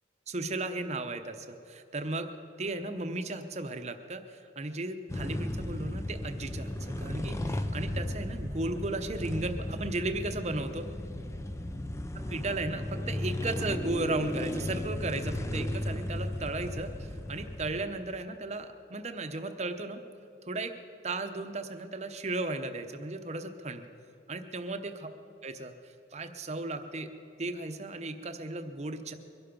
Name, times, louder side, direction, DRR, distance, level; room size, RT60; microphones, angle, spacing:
voice 1, 0.3-2.3 2.6-10.9 12.3-20.0 20.5-20.8 21.0-23.9 24.3-25.1 25.4-25.7 26.1-27.1 27.4-29.1, right 2 dB, 40° right, 7 dB, 0.8 m, -35 dB
sound 1, 5.1-17.8, left 1 dB, 15° left, 0.6 m, -35 dB
22.5 x 11.5 x 5.3 m, 2.7 s
head